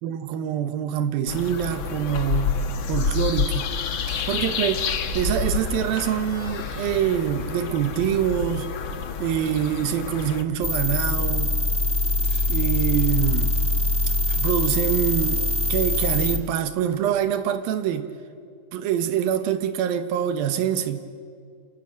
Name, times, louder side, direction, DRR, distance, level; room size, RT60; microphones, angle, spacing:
voice 1, 0.0-2.5 2.9-3.7 4.3-4.8 5.1-8.7 9.2-11.5 12.5-13.5 14.4-15.4 15.7-18.1 18.7-21.0, right 10 dB, 90° right, 10 dB, 3.0 m, -25 dB
sound 1, 1.3-10.4, left 6 dB, 75° left, 1.1 m, -29 dB
sound 2, 3.5-9.1 9.5-9.7 12.1-14.5 15.5-15.6 16.4-16.5, right 1 dB, 25° right, 3.3 m, -37 dB
sound 3, 10.6-16.4, left 2 dB, 5° left, 1.3 m, -23 dB
29.0 x 25.5 x 7.5 m, 2.3 s
omnidirectional pair, 4.1 m